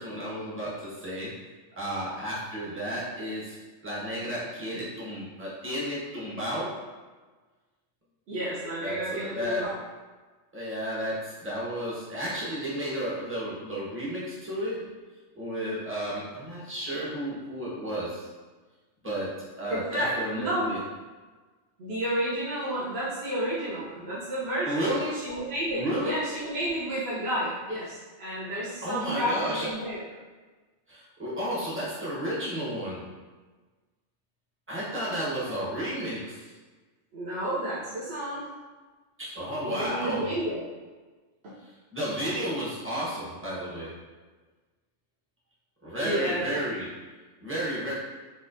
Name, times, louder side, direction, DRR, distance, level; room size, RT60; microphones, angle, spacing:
voice 1, 0.0-1.3 1.7-3.6 3.8-6.7 8.8-9.7 10.5-14.9 15.3-18.3 19.0-20.8 24.6-25.2 25.7-26.2 28.8-29.7 30.9-33.0 34.7-36.4 39.2-40.4 41.6-43.9 45.8-46.9 47.4-47.9, equal, 10° right, -8 dB, 0.7 m, -32 dB
voice 2, 8.3-9.8 19.7-20.7 21.8-24.8 25.1-30.0 35.2-35.5 37.1-38.5 39.6-40.6 41.4-41.5 46.0-46.4, right 1 dB, 60° right, -8 dB, 0.9 m, -31 dB
4.1 x 2.4 x 2.5 m, 1.3 s
omnidirectional pair, 1.3 m